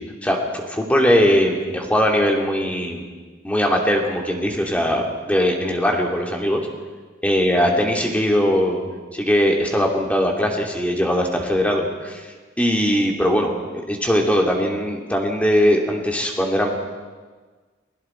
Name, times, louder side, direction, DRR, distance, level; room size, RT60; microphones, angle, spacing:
voice 1, 0.2-3.0 3.4-6.7 7.2-8.8 9.1-16.7, equal, 5° left, 0 dB, 2.8 m, -20 dB
29.5 x 21.0 x 4.6 m, 1.4 s
head